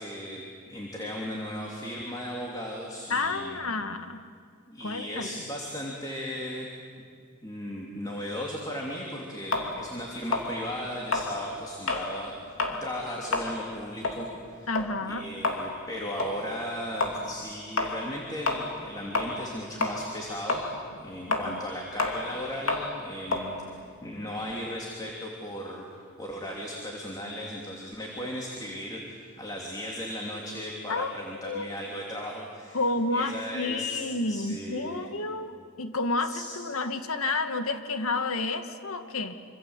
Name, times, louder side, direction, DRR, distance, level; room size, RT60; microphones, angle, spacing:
voice 1, 0.0-3.7 4.7-6.7 7.4-14.7 15.0-20.6 21.0-25.9 26.2-32.8 33.1-34.0 34.3-35.1 36.2-36.6, equal, 20° left, -1 dB, 2.8 m, -36 dB
voice 2, 3.1-4.3 4.8-5.4 14.7-15.2 21.3-21.6 30.9-31.7 32.7-35.5 35.8-39.3, left 3 dB, 85° left, 8 dB, 1.7 m, -30 dB
sound 1, 9.5-12.1 12.5-12.8 13.2-19.5 19.8-24.6, left 3 dB, 65° left, 3.0 m, -30 dB
26.0 x 26.0 x 8.1 m, 2.2 s
head